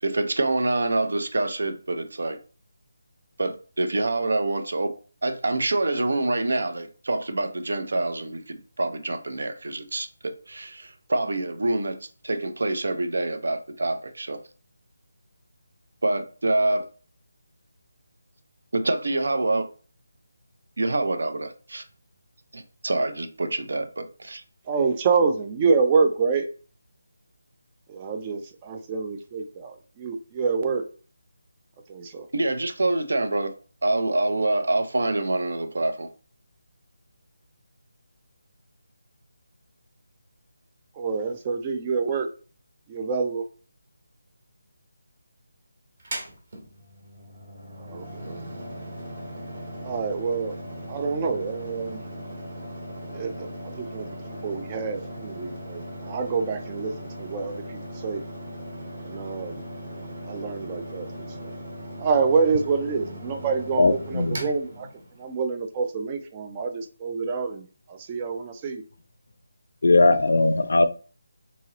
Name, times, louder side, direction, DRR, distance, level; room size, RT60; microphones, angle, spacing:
voice 1, 0.0-2.4 3.4-4.9 5.2-12.0 12.2-14.4 16.0-16.9 18.7-19.7 20.8-21.8 22.5-24.4 32.3-33.5 33.8-36.1, right 2 dB, 65° right, 0.6 m, -26 dB
voice 2, 24.6-26.5 27.9-30.8 31.9-32.3 40.9-42.3 42.9-43.5 47.8-48.4 49.8-50.5 50.9-52.0 53.1-58.2 59.0-61.5 62.0-64.9 65.2-68.8, right 5 dB, 15° right, 0.3 m, -27 dB
Mechanical fan, 46.0-65.4, equal, 35° right, 1.1 m, -38 dB
voice 3, 63.8-64.4 69.8-70.9, left 2 dB, 60° left, 0.4 m, -19 dB
2.9 x 2.8 x 3.8 m
figure-of-eight pair, 175°, 0 cm